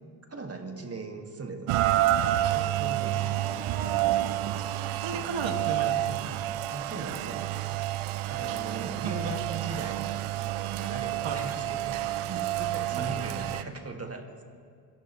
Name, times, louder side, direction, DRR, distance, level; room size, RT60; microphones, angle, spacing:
voice 1, 0.3-4.1 5.7-5.9 6.7-7.8 8.3-14.3, right 3 dB, 30° right, 4 dB, 1.9 m, -39 dB
Rain, 1.7-13.6, right 14 dB, 85° right, 0.6 m, -29 dB
voice 2, 3.3-6.4 8.8-9.1 11.2-11.6 13.0-13.2, right 4 dB, 65° right, 4 dB, 2.0 m, -36 dB
29.5 x 11.5 x 3.1 m, 2.1 s
supercardioid pair, 65°, 49 cm